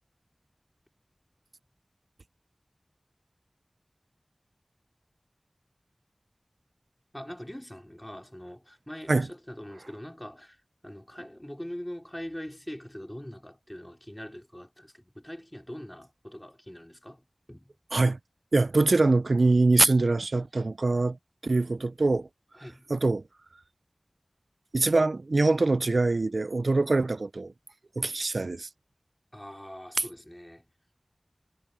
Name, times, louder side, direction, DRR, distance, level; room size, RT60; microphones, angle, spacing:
voice 1, 7.1-17.7 22.6-22.9 29.3-30.6, equal, 15° left, 4.4 m, -42 dB
voice 2, 18.5-21.2 21.4-22.3 22.9-23.2 24.7-27.5 28.0-28.7, right 3 dB, 85° right, 0.3 m, -24 dB
wide cardioid pair, 50°, 0 cm